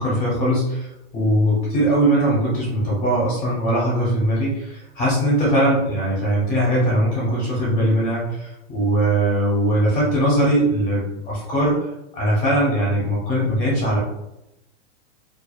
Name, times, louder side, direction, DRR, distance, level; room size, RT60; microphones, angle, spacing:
voice 1, 0.0-11.8 12.1-14.0, right 1 dB, 20° left, -5 dB, 0.8 m, -20 dB
2.4 x 2.3 x 2.4 m, 0.87 s
supercardioid pair, 170°, 35 cm